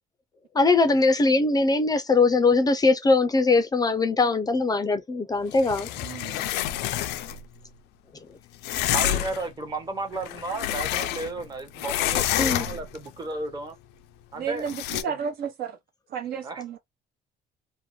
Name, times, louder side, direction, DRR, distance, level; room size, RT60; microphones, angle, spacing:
voice 1, 0.5-5.9 12.4-12.7, left 3 dB, 25° left, 0.4 m, -21 dB
sound 1, 5.5-7.4 8.6-9.5 10.1-11.5 11.7-13.0 14.7-15.0, left 13 dB, 90° left, 0.4 m, -28 dB
voice 2, 6.0-6.5 8.9-13.8 14.3-15.2 16.4-16.6, right 3 dB, 25° right, 0.9 m, -34 dB
voice 3, 14.3-15.8 16.1-16.8, right 6 dB, 65° right, 0.9 m, -31 dB
2.6 x 2.1 x 3.0 m
cardioid pair, 110°, 17 cm